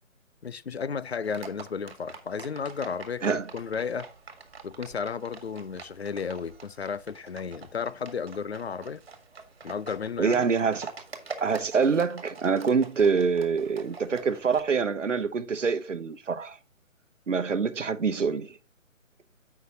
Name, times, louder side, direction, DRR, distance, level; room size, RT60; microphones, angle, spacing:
voice 1, 0.4-4.1 4.6-9.0 9.6-10.4, left 6 dB, 50° left, 0.6 m, -33 dB
Livestock farm animals working animals, 1.2-14.6, right 4 dB, 50° right, 1.8 m, -45 dB
voice 2, 10.2-10.9 11.4-16.6 17.3-18.6, right 5 dB, 65° right, 1.0 m, -25 dB
7.9 x 5.9 x 3.9 m
figure-of-eight pair, 145°, 41 cm